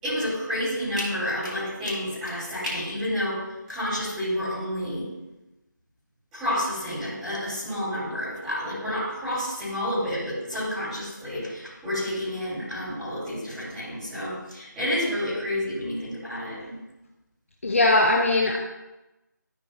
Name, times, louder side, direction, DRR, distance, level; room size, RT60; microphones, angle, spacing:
voice 1, 0.0-3.4 3.7-5.0 6.3-16.7, left 1 dB, 5° right, -16 dB, 3.2 m, -29 dB
voice 2, 17.6-18.6, left 2 dB, 40° left, 1 dB, 0.7 m, -20 dB
14.0 x 7.6 x 2.4 m, 1.0 s
figure-of-eight pair, 175°, 10 cm